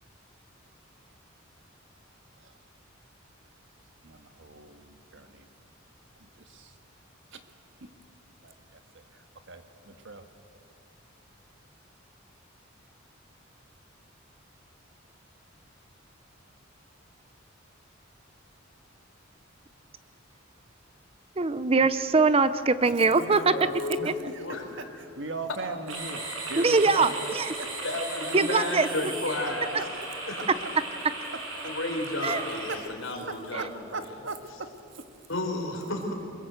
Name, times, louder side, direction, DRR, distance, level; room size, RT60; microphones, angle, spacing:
voice 1, 4.0-5.5 6.2-6.8 7.3-7.4 7.8-7.9 8.4-10.3 22.8-27.1 27.6-28.3 28.6-29.1 29.3-29.9 30.4-30.7 31.6-31.7 32.2-32.4 32.7-32.9 33.3-35.0, right 3 dB, 65° right, 8 dB, 1.6 m, -40 dB
voice 2, 21.4-23.4 26.6-27.1 27.4-27.5 28.3-28.9 32.2-32.4, right 4 dB, 30° right, 13 dB, 0.6 m, -22 dB
voice 3, 23.3-24.6 27.8-29.8 30.3-30.4 31.6-33.7 35.3-36.1, left 2 dB, 70° left, 2 dB, 4.4 m, -32 dB
sound 1, 25.9-32.8, right 2 dB, 80° right, 5.9 m, -36 dB
24.0 x 21.5 x 7.9 m, 2.7 s
head